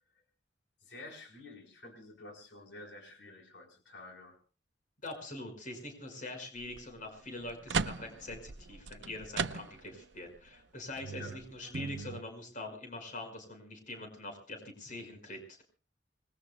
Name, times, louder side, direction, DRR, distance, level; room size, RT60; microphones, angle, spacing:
voice 1, 0.8-4.4 11.2-11.4, left 2 dB, 85° left, 2 dB, 3.9 m, -50 dB
voice 2, 5.0-15.6, left 2 dB, 45° left, 4 dB, 5.3 m, -44 dB
sound 1, 6.6-6.8 7.3-10.1 10.5-10.6 11.0-12.2, right 5 dB, 90° right, 0.7 m, -37 dB
26.5 x 20.5 x 2.2 m, 0.35 s
head